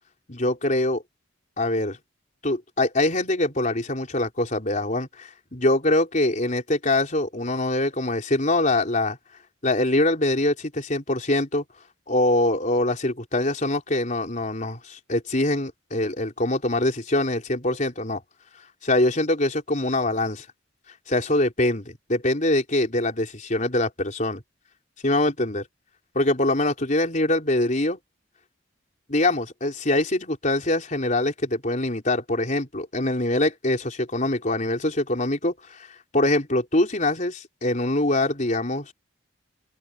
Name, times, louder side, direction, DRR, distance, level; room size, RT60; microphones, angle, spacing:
voice 1, 0.3-1.0 1.6-2.0 2.4-9.2 9.6-11.6 12.1-18.2 18.8-20.5 21.1-24.4 25.0-25.6 26.1-28.0 29.1-35.8 36.1-38.9, left 1 dB, 40° left, 4.3 m, -24 dB
open air
head